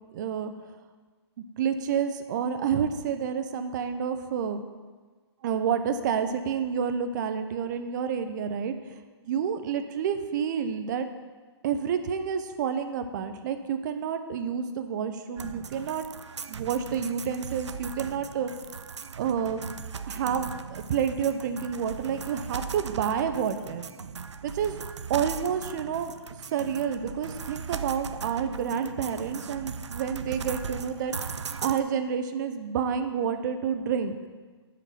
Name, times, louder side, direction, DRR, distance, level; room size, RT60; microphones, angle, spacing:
voice 1, 0.1-0.5 1.6-4.6 5.4-8.7 9.2-11.1 11.6-16.0 16.5-18.5 19.2-19.6 20.0-23.8 24.4-24.7 25.1-26.1 26.5-31.1 31.6-34.2, right 7 dB, 40° right, 8 dB, 0.8 m, -29 dB
sound 1, 15.4-31.8, right 6 dB, 90° right, 0.5 m, -38 dB
9.6 x 5.2 x 5.8 m, 1.4 s
hypercardioid pair, 140°, 14 cm